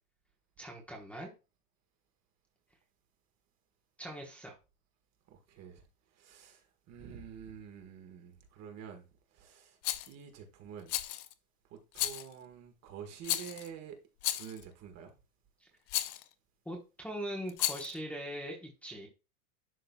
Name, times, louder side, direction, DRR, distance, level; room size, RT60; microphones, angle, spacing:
voice 1, 0.6-1.3 4.0-4.6 15.6-15.7 16.6-19.1, equal, 5° left, 1.2 m, -41 dB
voice 2, 5.3-5.8 6.1-9.8 10.1-11.0 11.7-14.0 14.3-15.1, right 8 dB, 35° right, 1.6 m, -48 dB
Rattle, 9.8-10.1 10.9-11.3 11.9-12.3 13.2-13.7 14.2-14.6 15.9-16.2 17.5-18.0, left 15 dB, 35° left, 0.4 m, -34 dB
11.0 x 3.8 x 2.3 m
supercardioid pair, 140°, 43 cm